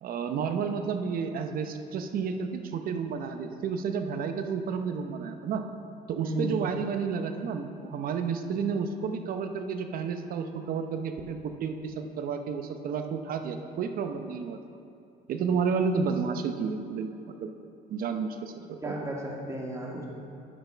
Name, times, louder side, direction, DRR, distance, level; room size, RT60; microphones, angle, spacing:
voice 1, 0.0-5.6 6.1-14.6 15.3-17.5 17.9-18.9, right 6 dB, 60° right, 7 dB, 0.8 m, -31 dB
voice 2, 6.2-6.5 18.8-20.1, equal, 15° right, -2 dB, 1.7 m, -34 dB
9.5 x 5.7 x 5.6 m, 2.5 s
cardioid pair, 110°, 17 cm